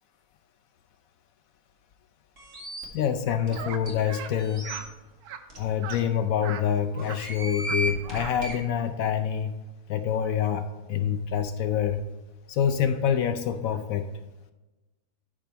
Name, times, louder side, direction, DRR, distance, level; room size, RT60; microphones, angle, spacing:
sound 1, 2.4-2.8 3.5-3.6 3.8-3.9 4.4-4.8 5.5-5.6 5.9-6.0 7.0-8.5, right 1 dB, 50° right, 2.3 m, -33 dB
voice 1, 2.9-4.7 5.6-9.5 9.9-12.0 12.5-14.1, left 8 dB, 70° left, 8 dB, 0.9 m, -26 dB
sound 2, 3.6-3.8 4.1-4.3 4.6-4.9 5.2-5.4 5.8-6.0 6.4-6.6 6.9-7.2 7.5-7.8 8.0-8.3, right 8 dB, 70° right, 1.2 m, -38 dB
12.5 x 5.0 x 4.4 m, 1.1 s
omnidirectional pair, 1.7 m